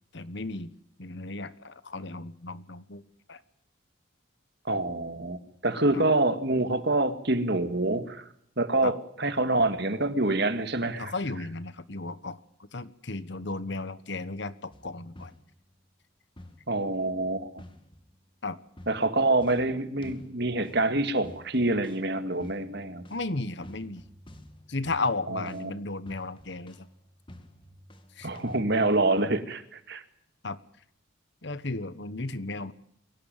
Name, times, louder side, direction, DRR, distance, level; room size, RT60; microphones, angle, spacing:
voice 1, 0.1-0.7 1.0-3.0 3.3-3.4 5.9-6.0 8.8-8.9 11.0-12.4 12.7-15.3 18.4-18.6 23.1-24.0 24.7-26.9 28.2-28.3 30.4-30.6 31.4-32.7, left 3 dB, 55° left, 15 dB, 1.3 m, -34 dB
voice 2, 4.7-8.2 8.6-11.1 16.7-17.6 18.9-23.1 25.3-25.7 28.2-30.0, right 2 dB, 55° right, 10 dB, 2.1 m, -26 dB
sound 1, 14.7-15.8 16.4-17.0 17.6-18.4 18.8-28.6, left 1 dB, 25° left, 2.3 m, -51 dB
23.5 x 18.0 x 9.1 m, 0.72 s
head